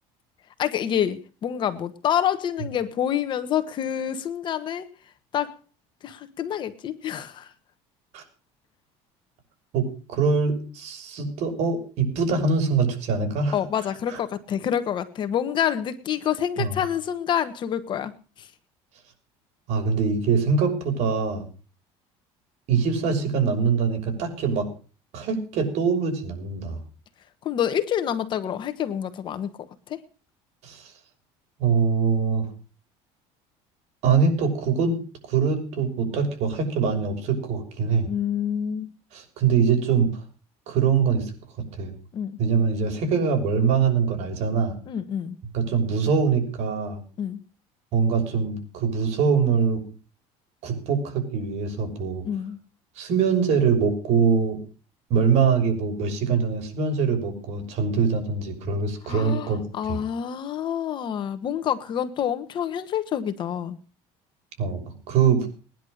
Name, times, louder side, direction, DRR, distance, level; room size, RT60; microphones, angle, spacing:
voice 1, 0.6-4.9 5.3-5.6 6.0-7.5 13.5-18.1 18.4-18.5 27.4-29.5 29.9-30.0 38.0-38.9 42.1-42.3 44.9-45.4 47.2-47.4 52.2-52.6 59.0-63.8, left 9 dB, 35° left, 10 dB, 1.4 m, -27 dB
voice 2, 9.7-13.6 14.1-14.2 16.6-16.8 19.7-21.4 22.7-24.7 25.1-26.8 30.6-30.9 31.6-32.5 34.0-38.1 39.1-40.2 40.7-41.9 42.4-44.8 45.5-47.0 47.9-49.8 50.6-52.2 53.0-54.6 55.1-59.6 59.9-60.0 64.6-64.8 65.1-65.5, right 5 dB, 60° right, 5 dB, 6.1 m, -23 dB
20.0 x 10.5 x 6.6 m, 0.38 s
cardioid pair, 160°, 13 cm